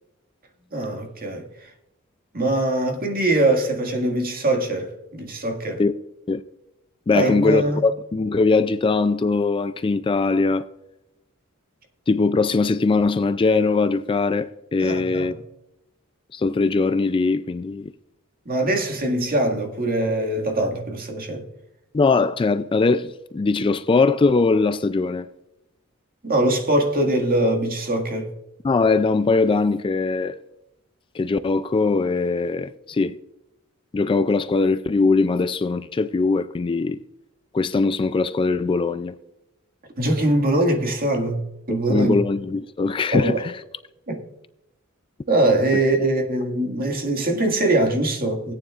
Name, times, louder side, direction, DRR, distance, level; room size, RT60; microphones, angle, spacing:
voice 1, 0.7-1.4 2.3-5.8 7.1-7.8 14.8-15.3 18.5-21.4 26.2-28.3 40.0-42.2 43.1-43.4 44.1-44.2 45.3-48.5, right 1 dB, 45° right, 1.9 m, -22 dB
voice 2, 7.1-10.7 12.1-15.4 16.3-17.9 21.9-25.3 28.6-30.4 31.1-33.2 33.9-37.0 37.5-39.1 41.7-43.5, left 3 dB, 25° left, 0.3 m, -21 dB
17.5 x 9.5 x 2.4 m
head